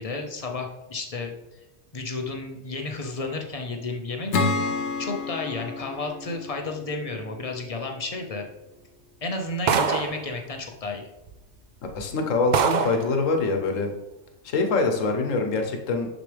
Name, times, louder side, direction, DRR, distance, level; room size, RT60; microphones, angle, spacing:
voice 1, 0.0-1.6 1.9-4.3 5.0-8.5 9.2-11.1, left 3 dB, 35° left, 3 dB, 0.6 m, -32 dB
Acoustic guitar / Strum, 4.3-7.8, left 3 dB, 65° left, 0.9 m, -29 dB
sound 1, 9.7-10.2 11.3-11.4 11.9-12.0 12.5-13.1, right 6 dB, 65° right, 0.4 m, -23 dB
voice 2, 11.9-13.9 14.4-16.1, left 3 dB, 85° left, 4 dB, 1.3 m, -24 dB
6.4 x 6.1 x 3.3 m, 0.97 s
omnidirectional pair, 1.3 m